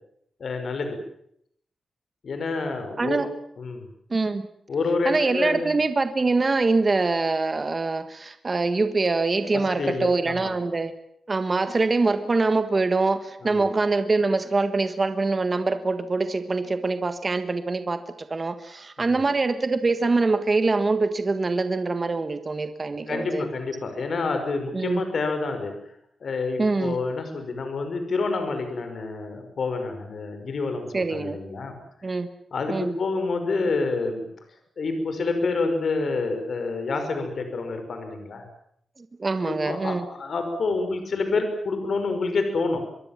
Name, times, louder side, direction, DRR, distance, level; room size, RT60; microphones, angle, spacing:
voice 1, 0.4-1.0 2.2-3.2 3.6-3.9 4.7-5.7 9.5-10.5 13.4-13.7 19.0-19.2 23.1-25.7 26.2-31.8 32.5-34.3 34.8-38.5 39.4-42.8, left 3 dB, 55° left, 7 dB, 5.6 m, -28 dB
voice 2, 3.0-3.3 4.1-4.5 5.0-10.9 11.3-23.5 24.7-25.0 26.6-27.0 30.9-31.4 32.0-32.3 32.7-32.9 39.0-40.0, right 3 dB, 30° right, 9 dB, 1.5 m, -24 dB
25.0 x 22.5 x 7.4 m, 0.70 s
wide cardioid pair, 140°, 0 cm